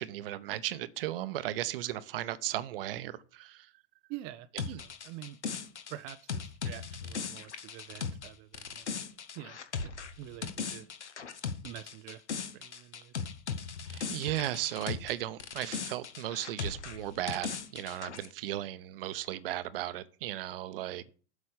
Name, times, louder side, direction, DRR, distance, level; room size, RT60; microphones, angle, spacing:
voice 1, 0.0-3.7 13.9-21.1, right 13 dB, 55° right, 0.8 m, -36 dB
voice 2, 4.1-5.4 5.9-9.0 9.3-10.9 11.6-12.2 12.5-13.1, right 14 dB, 30° right, 0.4 m, -46 dB
sound 1, 4.6-15.1 15.4-18.3, left 6 dB, 75° left, 1.1 m, -38 dB
8.0 x 5.2 x 7.0 m
figure-of-eight pair, 90°, 35 cm